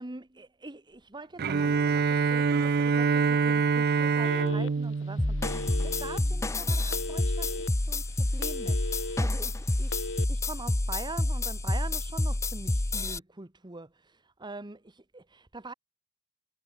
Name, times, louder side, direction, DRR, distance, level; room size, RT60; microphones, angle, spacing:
voice 1, 0.0-15.7, right 2 dB, 20° right, 1.1 m, -44 dB
Bowed string instrument, 1.4-6.3, right 5 dB, 50° right, 0.5 m, -26 dB
Telephone, 4.2-4.9 5.4-6.2 6.9-7.7 8.1-9.2 9.8-10.2, left 2 dB, 65° left, 2.6 m, -36 dB
sound 1, 5.2-13.2, left 2 dB, 15° left, 0.6 m, -29 dB
head